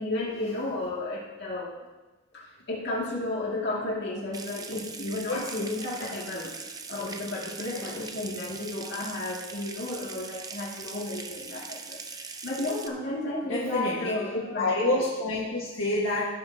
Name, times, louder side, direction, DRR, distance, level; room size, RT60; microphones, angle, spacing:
voice 1, 0.0-1.7 2.3-15.1, left 2 dB, 55° left, -3 dB, 2.4 m, -33 dB
Water tap faucet / Sink (filling or washing) / Trickle dribble, 4.3-12.9, right 4 dB, 20° right, 0.7 m, -41 dB
voice 2, 5.3-5.7 13.5-14.2 14.6-16.2, left 2 dB, 75° left, -5 dB, 1.7 m, -28 dB
17.5 x 7.7 x 2.8 m, 1.1 s
head